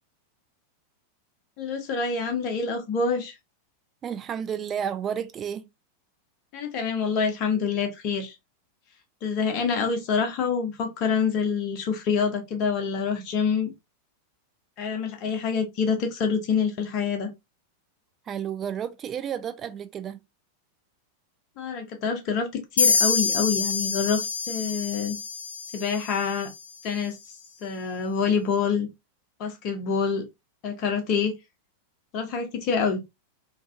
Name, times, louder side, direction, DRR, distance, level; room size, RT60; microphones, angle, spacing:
voice 1, 1.6-3.4 6.5-8.4 9.2-13.7 14.8-17.3 21.6-22.5 22.7-25.2 25.7-26.5 26.8-27.2 27.6-28.9 29.4-30.3 30.6-31.3 32.1-33.0, left 5 dB, 40° left, 0.8 m, -26 dB
voice 2, 4.0-5.7 18.3-20.2, right 8 dB, 25° right, 0.3 m, -31 dB
sound 1, 22.8-26.4, left 5 dB, 75° left, 0.3 m, -26 dB
2.5 x 2.5 x 2.3 m
figure-of-eight pair, 90°, 0 cm